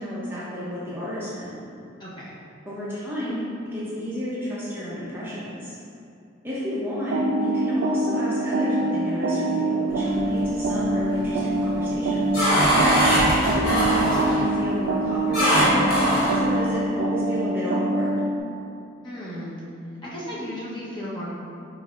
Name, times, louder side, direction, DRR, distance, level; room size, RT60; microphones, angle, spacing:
voice 1, 0.0-1.5 2.7-5.7 6.4-12.5 13.5-18.2, equal, 10° right, -9 dB, 0.6 m, -31 dB
voice 2, 2.0-2.3 13.0-13.3 19.0-19.5 20.0-21.3, equal, 25° left, -8 dB, 0.8 m, -35 dB
sound 1, 7.1-18.4, right 2 dB, 80° right, 0.4 m, -25 dB
sound 2, 9.9-10.5 11.0-11.4 11.9-14.5 15.3-16.4, equal, 50° left, 1.2 m, -21 dB
4.2 x 3.9 x 2.4 m, 2.5 s
head